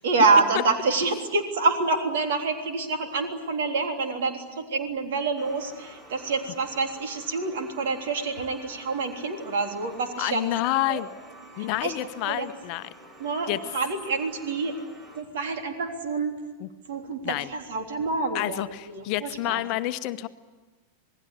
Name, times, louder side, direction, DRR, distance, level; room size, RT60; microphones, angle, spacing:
voice 1, 0.0-10.5 10.9-11.0 11.6-12.5 13.2-14.8 15.2-16.4 16.9-19.6, right 4 dB, 60° right, 5 dB, 3.5 m, -27 dB
sound 1, 5.4-15.2, right 2 dB, 30° right, 4.9 m, -49 dB
voice 2, 10.2-11.1 11.6-12.8 13.5-13.6 16.6-16.7 17.2-17.5 18.3-20.3, left 16 dB, 40° left, 11 dB, 1.0 m, -28 dB
27.5 x 19.5 x 9.8 m, 1.2 s
figure-of-eight pair, 90°, 0 cm